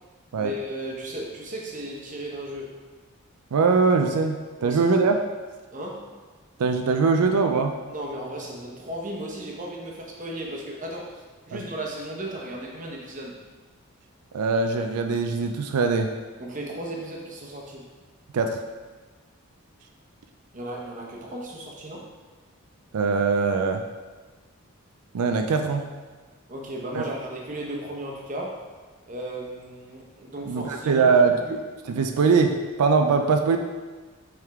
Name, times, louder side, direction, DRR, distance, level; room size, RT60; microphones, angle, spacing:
voice 1, 0.3-2.7 4.6-5.1 5.7-6.1 7.9-13.4 16.4-17.9 20.5-22.0 26.5-28.6 29.1-31.6, right 1 dB, 35° right, -2 dB, 0.9 m, -35 dB
voice 2, 3.5-5.2 6.6-7.7 11.5-11.6 14.3-16.1 18.3-18.6 22.9-23.8 25.1-25.9 26.9-27.0 30.5-31.4 31.9-33.6, right 4 dB, 90° right, 5 dB, 0.4 m, -22 dB
7.5 x 3.6 x 3.5 m, 1.3 s
head